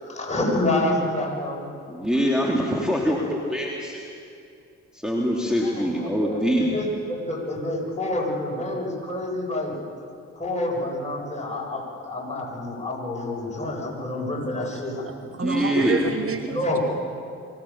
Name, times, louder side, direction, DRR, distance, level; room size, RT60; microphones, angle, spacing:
voice 1, 0.0-1.7 5.6-9.8 10.4-15.0 15.8-16.0 16.5-16.8, left 1 dB, 20° left, -2 dB, 7.8 m, -28 dB
voice 2, 1.9-4.1 4.9-6.7 15.2-16.0 16.5-16.6, equal, ahead, -3 dB, 3.2 m, -24 dB
voice 3, 15.3-16.8, right 6 dB, 35° right, 8 dB, 1.2 m, -29 dB
24.0 x 17.0 x 7.3 m, 2.5 s
hypercardioid pair, 40°, 37 cm